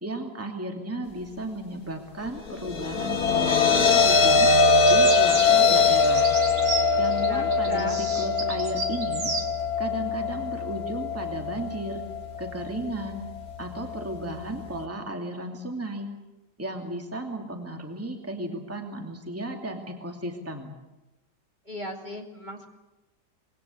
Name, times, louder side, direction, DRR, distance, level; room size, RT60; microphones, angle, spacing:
voice 1, 0.0-4.5 4.9-6.3 6.9-9.3 9.8-12.0 12.4-13.2 13.6-16.1 16.6-20.7, right 1 dB, 10° right, 3 dB, 2.6 m, -34 dB
sound 1, 2.5-14.8, left 4 dB, 60° left, 1.8 m, -23 dB
sound 2, 4.8-9.5, right 3 dB, 90° right, 3.4 m, -33 dB
voice 2, 7.2-8.0 21.7-22.7, equal, 25° right, 0 dB, 2.6 m, -36 dB
26.0 x 21.5 x 8.5 m, 1.0 s
omnidirectional pair, 1.8 m